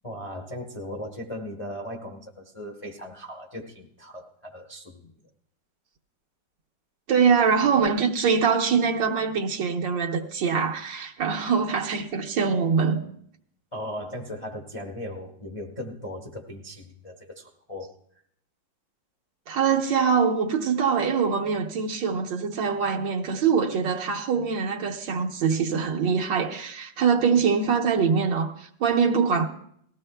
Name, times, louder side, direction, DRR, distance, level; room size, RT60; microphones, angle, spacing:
voice 1, 0.0-5.1 13.7-18.0, left 1 dB, 35° left, 0.5 m, -38 dB
voice 2, 7.1-13.0 19.5-29.5, right 6 dB, 75° right, 1.7 m, -23 dB
19.0 x 14.5 x 2.2 m
omnidirectional pair, 2.0 m